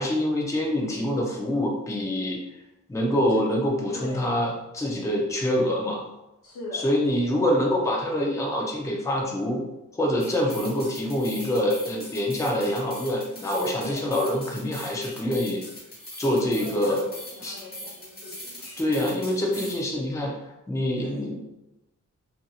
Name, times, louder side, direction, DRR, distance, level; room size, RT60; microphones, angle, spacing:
voice 1, 0.0-2.4 2.9-6.1 6.7-9.6 9.9-15.6 16.2-17.0 17.4-17.6 18.8-20.3 20.7-21.4, left 1 dB, 10° left, -2 dB, 0.4 m, -25 dB
voice 2, 3.9-4.3 6.4-6.9 9.1-9.3 13.8-14.1 16.5-18.7 21.0-21.4, left 1 dB, 75° left, -6 dB, 0.9 m, -40 dB
sound 1, 10.2-19.8, left 1 dB, 30° left, 1.0 m, -42 dB
2.7 x 2.6 x 2.3 m, 0.92 s
wide cardioid pair, 125°, 31 cm